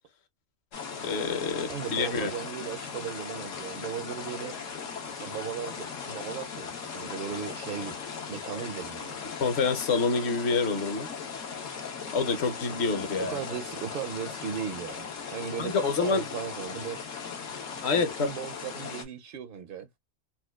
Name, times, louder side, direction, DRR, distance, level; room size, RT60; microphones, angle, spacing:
sound 1, 0.7-19.0, left 6 dB, 80° left, 1.3 m, -38 dB
voice 1, 1.0-2.3 9.4-11.1 12.1-13.4 15.6-16.2 17.8-18.3, left 4 dB, 60° left, 1.0 m, -27 dB
voice 2, 1.7-4.5 5.2-8.0 8.3-9.2 13.2-17.0 17.9-19.9, right 8 dB, 60° right, 0.6 m, -37 dB
4.2 x 2.3 x 2.2 m
omnidirectional pair, 1.3 m